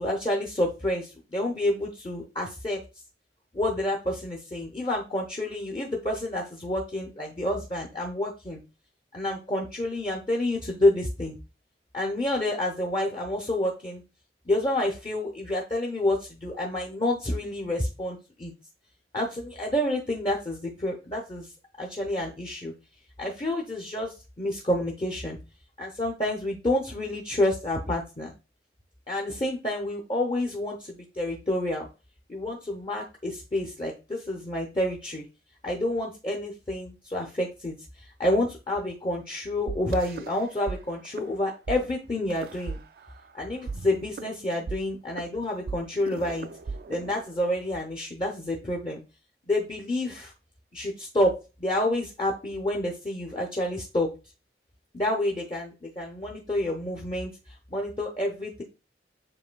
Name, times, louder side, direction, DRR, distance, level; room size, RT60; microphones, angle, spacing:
voice 1, 0.0-2.8 3.5-8.6 9.1-11.4 11.9-14.0 14.5-18.5 19.1-21.5 21.8-22.7 23.2-25.4 25.8-28.3 29.1-31.9 32.3-35.2 35.6-37.8 38.2-42.8 43.3-46.5 46.9-49.0 49.5-50.3 50.7-54.1 54.9-57.3 57.7-58.6, left 1 dB, 30° left, -1 dB, 0.6 m, -29 dB
sound 1, 39.7-40.8 41.0-41.3 41.7-41.8 42.3-43.3 43.7-47.7, right 4 dB, 55° right, 0.3 m, -37 dB
7.6 x 2.6 x 2.2 m, 0.29 s
head